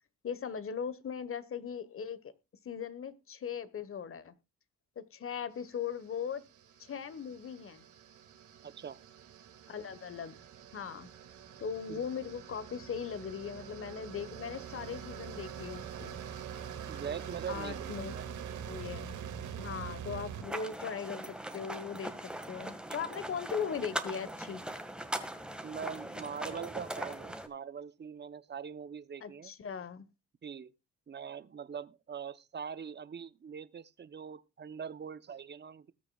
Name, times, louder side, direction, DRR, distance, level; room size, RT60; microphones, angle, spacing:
voice 1, 0.2-2.3 2.6-4.3 5.0-6.4 6.8-7.8 9.7-10.4 10.7-11.1 11.6-16.2 17.5-18.2 18.7-19.2 19.6-22.2 22.5-24.6 29.2-30.1, left 7 dB, 45° left, 1.3 m, -39 dB
sound 1, 5.7-20.4, right 8 dB, 75° right, 2.4 m, -45 dB
voice 2, 8.6-9.0 11.9-12.1 16.9-18.2 25.6-29.5 30.4-30.7 31.1-35.9, right 7 dB, 35° right, 0.8 m, -42 dB
sound 2, 20.4-27.5, right 1 dB, 5° right, 1.8 m, -40 dB
20.0 x 6.8 x 2.4 m
cardioid pair, 90°, 30 cm